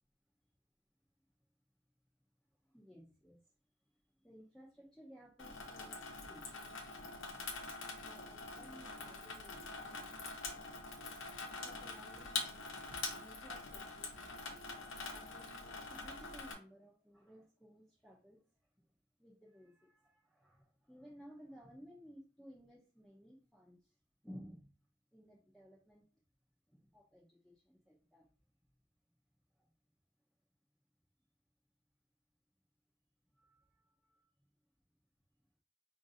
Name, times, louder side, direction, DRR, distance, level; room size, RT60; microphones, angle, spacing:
voice 1, 2.7-3.4 4.2-6.6 8.0-10.1 11.5-12.6 13.1-14.3 15.1-18.4 19.2-23.8 24.2-24.7 25.1-26.0 26.7-28.3 33.4-33.6, equal, 5° left, -4 dB, 0.7 m, -58 dB
Water tap faucet / Sink (filling or washing), 5.4-16.5, left 3 dB, 70° left, 0.9 m, -45 dB
5.1 x 2.6 x 2.7 m, 0.36 s
head